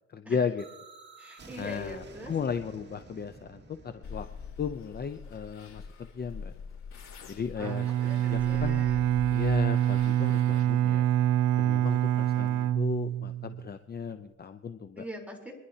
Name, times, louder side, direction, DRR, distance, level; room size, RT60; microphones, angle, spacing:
voice 1, 0.1-0.6 1.6-4.3 4.6-6.5 7.3-8.8 9.3-11.0 11.6-15.0, left 6 dB, 35° left, 9 dB, 0.6 m, -35 dB
sound 1, 0.6-6.3, right 3 dB, 35° right, 2.0 m, -51 dB
voice 2, 1.2-2.3 7.6-9.1 15.0-15.5, left 1 dB, 5° right, -1 dB, 3.7 m, -43 dB
sound 2, 4.0-10.6, left 5 dB, 65° left, 5.2 m, -44 dB
Bowed string instrument, 7.6-13.6, right 11 dB, 75° right, 0.9 m, -26 dB
26.5 x 11.0 x 2.8 m, 1.0 s
cardioid pair, 90°, 30 cm